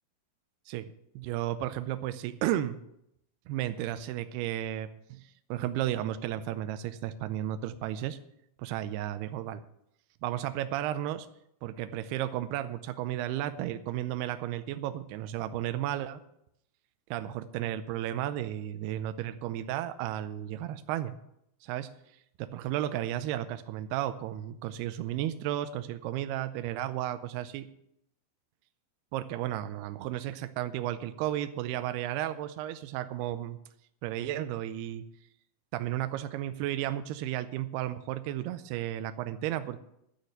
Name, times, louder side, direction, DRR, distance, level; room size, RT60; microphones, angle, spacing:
voice 1, 0.7-2.8 3.5-4.9 5.5-8.2 8.6-9.6 10.2-11.3 11.6-16.2 17.1-21.2 21.6-21.9 22.4-27.7 29.1-33.6 34.0-35.0 35.7-39.8, right 12 dB, 85° right, 10 dB, 2.3 m, -33 dB
11.5 x 6.5 x 9.3 m, 0.77 s
omnidirectional pair, 5.3 m